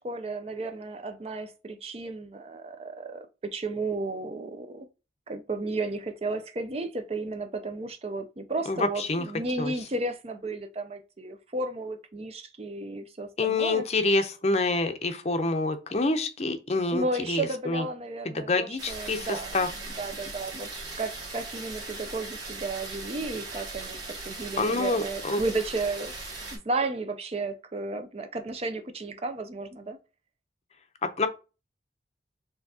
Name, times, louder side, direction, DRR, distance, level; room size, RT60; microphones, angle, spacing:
voice 1, 0.0-3.3 3.5-4.9 5.3-13.8 16.9-24.0 24.3-26.1 26.5-30.0, right 2 dB, 35° right, 0.5 m, -33 dB
voice 2, 8.7-9.3 9.6-9.7 13.4-17.8 18.3-19.3 19.5-19.7 24.6-25.4 31.2-31.3, left 3 dB, 35° left, 0.6 m, -27 dB
sound 1, 18.8-26.6, right 3 dB, 85° right, 2.0 m, -39 dB
4.5 x 3.3 x 2.7 m
head